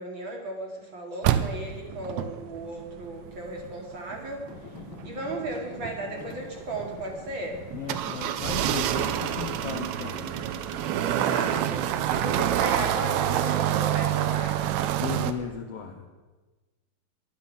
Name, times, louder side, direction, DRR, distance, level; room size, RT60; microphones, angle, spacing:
voice 1, 0.0-4.5 5.0-7.6 10.0-10.1 11.0-11.8 12.1-14.6, right 1 dB, 45° right, 1 dB, 2.0 m, -36 dB
sound 1, 1.2-15.3, right 11 dB, 80° right, 1.7 m, -28 dB
Traffic noise roadway noise / Engine, 4.5-11.7, left 4 dB, 75° left, 1.1 m, -44 dB
voice 2, 7.7-10.2 15.0-16.1, left 7 dB, 90° left, 4 dB, 1.3 m, -36 dB
11.5 x 11.0 x 7.1 m, 1.3 s
omnidirectional pair, 3.9 m